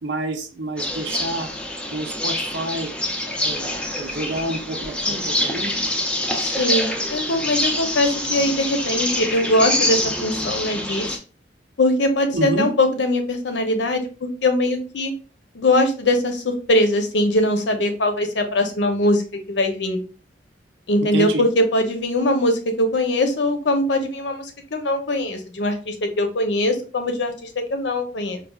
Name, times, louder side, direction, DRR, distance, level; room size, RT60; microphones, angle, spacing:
voice 1, 0.0-1.5 1.9-2.9 3.4-5.8 12.3-12.7 21.1-21.5, right 1 dB, 80° right, 5 dB, 0.6 m, -28 dB
sound 1, 0.8-11.2, left 1 dB, 5° left, 0.4 m, -25 dB
voice 2, 6.4-11.2 11.8-15.1 15.5-19.2 19.5-20.0 20.9-28.4, left 1 dB, 80° left, 6 dB, 0.7 m, -21 dB
4.6 x 2.4 x 2.3 m, 0.36 s
head